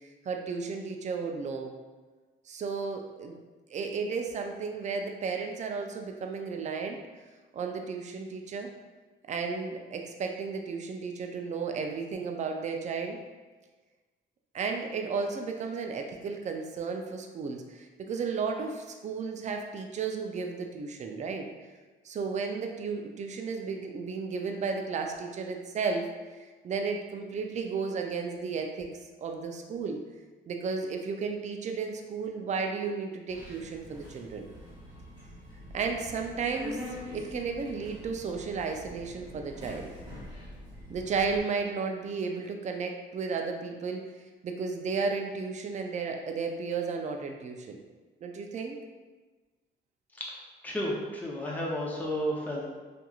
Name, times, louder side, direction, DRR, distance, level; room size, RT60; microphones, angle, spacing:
voice 1, 0.3-1.7 2.5-3.4 3.7-7.0 7.5-8.7 9.3-13.2 14.5-21.5 22.0-30.0 30.5-34.5 35.7-36.8 37.1-39.9 40.9-44.1 44.4-47.8 48.2-48.8, right 5 dB, 35° right, 3 dB, 0.4 m, -33 dB
Subway metro underground, 33.3-41.4, left 1 dB, 20° right, 1.1 m, -45 dB
voice 2, 50.6-52.7, equal, 10° left, -4 dB, 0.6 m, -32 dB
2.8 x 2.5 x 2.3 m, 1.3 s
cardioid pair, 90°, 20 cm